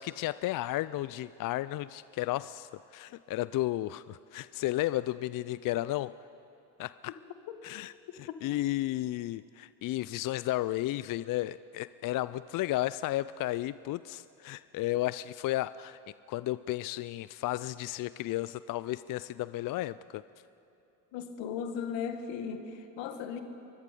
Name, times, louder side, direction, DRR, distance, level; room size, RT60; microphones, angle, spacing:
voice 1, 0.0-6.1 6.8-7.1 7.6-7.9 8.2-16.0 16.3-20.2, left 16 dB, 45° left, 17 dB, 0.4 m, -33 dB
voice 2, 21.1-23.4, left 7 dB, 65° left, 8 dB, 1.8 m, -36 dB
24.0 x 21.0 x 5.3 m, 2.9 s
hypercardioid pair, 60°, 47 cm